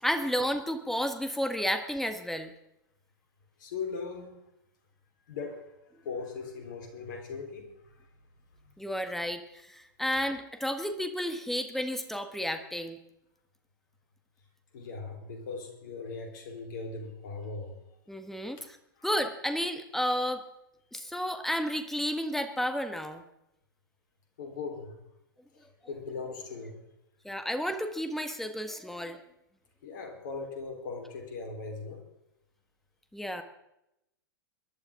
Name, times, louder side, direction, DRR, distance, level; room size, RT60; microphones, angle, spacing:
voice 1, 0.0-2.5 8.8-13.0 18.1-18.8 19.0-20.4 20.9-23.2 27.2-29.2 33.1-33.4, equal, ahead, 7 dB, 1.4 m, -32 dB
voice 2, 3.6-4.4 5.3-8.1 14.7-17.8 18.6-18.7 19.0-19.1 24.4-25.0 25.5-26.8 29.8-32.0, left 4 dB, 60° left, 3 dB, 3.9 m, -39 dB
23.0 x 11.5 x 3.7 m, 0.84 s
figure-of-eight pair, 100°, 12 cm